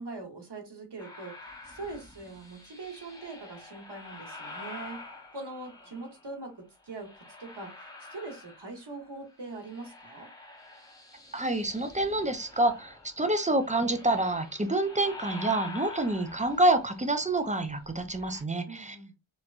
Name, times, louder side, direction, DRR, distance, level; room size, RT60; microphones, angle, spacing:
voice 1, 0.0-5.0 5.3-7.7 8.1-10.3 18.7-19.1, right 3 dB, 60° right, 1.1 m, -42 dB
sound 1, 1.0-6.3 6.8-9.1 9.3-18.4, left 3 dB, 10° left, 0.8 m, -47 dB
voice 2, 11.3-19.0, right 2 dB, 15° right, 0.5 m, -27 dB
3.0 x 2.1 x 2.4 m
cardioid pair, 40°, 47 cm